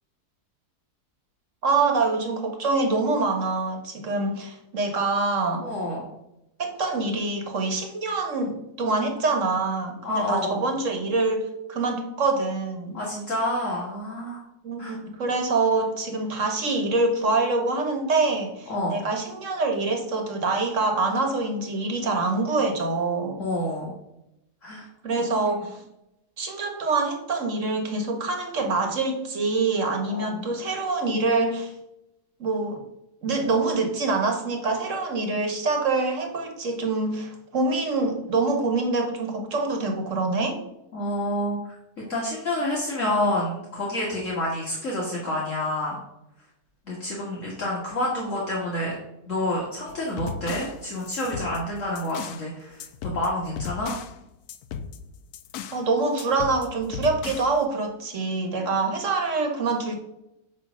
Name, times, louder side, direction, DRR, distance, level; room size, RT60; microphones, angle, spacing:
voice 1, 1.6-5.6 6.6-13.0 14.6-23.4 25.0-25.8 26.4-31.7 32.4-32.8 33.2-40.6 55.7-60.0, right 3 dB, 55° right, 3 dB, 1.6 m, -25 dB
voice 2, 5.6-6.0 10.0-10.6 12.9-14.4 14.8-15.0 18.7-19.0 23.4-23.9 24.6-24.9 25.2-25.3 30.1-30.5 40.9-46.0 46.9-49.0 49.3-54.0, left 1 dB, 55° left, -5 dB, 1.9 m, -28 dB
sound 1, 49.9-52.5 52.8-54.2 54.5-55.8 56.2-57.6, left 7 dB, 80° left, 1.1 m, -36 dB
9.4 x 3.3 x 6.2 m, 0.87 s
omnidirectional pair, 1.7 m